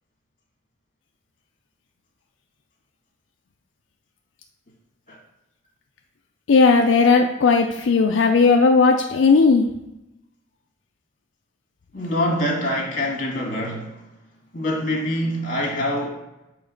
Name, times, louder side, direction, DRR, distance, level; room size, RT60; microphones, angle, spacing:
voice 1, 6.5-9.6, left 4 dB, 80° left, 0.4 m, -16 dB
voice 2, 11.9-14.0 14.5-16.1, left 1 dB, 45° left, 1.6 m, -25 dB
7.0 x 3.2 x 5.2 m
head